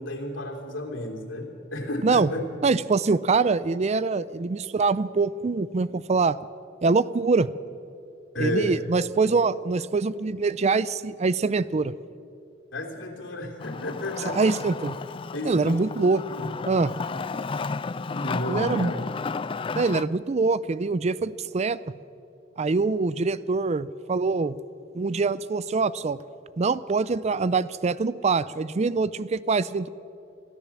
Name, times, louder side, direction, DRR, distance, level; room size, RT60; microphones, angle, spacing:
voice 1, 0.0-2.4 8.3-8.8 12.7-14.4 15.3-15.8 16.3-16.5 18.1-19.0, left 1 dB, 75° left, 1 dB, 3.2 m, -32 dB
voice 2, 2.6-6.4 6.8-7.5 8.4-11.9 14.3-15.0 15.4-16.2 16.7-16.9 18.5-19.0 19.7-21.8 22.6-24.6 24.9-26.2 26.6-29.9, right 4 dB, 35° right, 18 dB, 0.4 m, -24 dB
Wood, 13.6-20.0, left 4 dB, 25° left, 0.4 m, -32 dB
27.0 x 13.5 x 7.3 m, 2.6 s
head